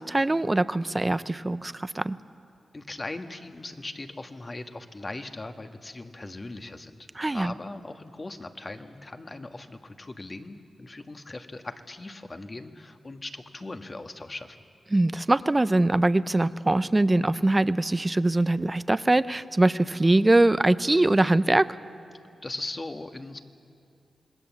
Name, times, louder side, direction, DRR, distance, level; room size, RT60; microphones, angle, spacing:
voice 1, 0.0-2.2 7.2-7.5 14.9-21.7, right 2 dB, 25° right, 14 dB, 0.7 m, -22 dB
voice 2, 2.7-14.6 22.4-23.4, left 2 dB, 35° left, 6 dB, 1.6 m, -39 dB
26.5 x 20.0 x 7.3 m, 2.6 s
cardioid pair, 50°, 0 cm